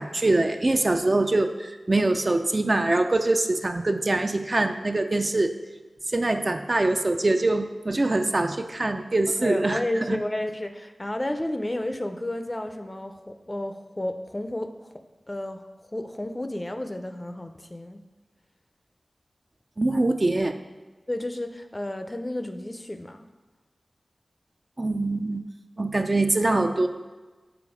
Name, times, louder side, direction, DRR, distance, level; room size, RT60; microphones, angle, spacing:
voice 1, 0.0-5.5 6.1-9.8 10.1-10.2 19.8-20.5 24.8-25.4 25.8-26.9, right 2 dB, 40° right, 7 dB, 0.4 m, -23 dB
voice 2, 9.4-14.9 15.3-15.6 15.9-18.0 21.1-23.2, left 1 dB, 25° left, 7 dB, 0.5 m, -32 dB
7.1 x 4.0 x 4.9 m, 1.3 s
cardioid pair, 50°, 0 cm